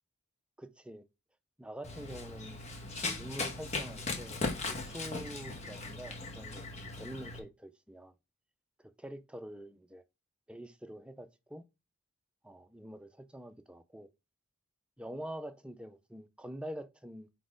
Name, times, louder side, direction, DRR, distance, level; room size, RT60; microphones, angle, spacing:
voice 1, 0.6-1.0 1.6-8.1 8.8-10.0 10.5-11.6 12.4-14.1 15.0-17.4, equal, 5° right, 0.4 m, -46 dB
Run, 1.8-7.4, left 3 dB, 35° left, 1.0 m, -38 dB
4.6 x 4.1 x 4.9 m
head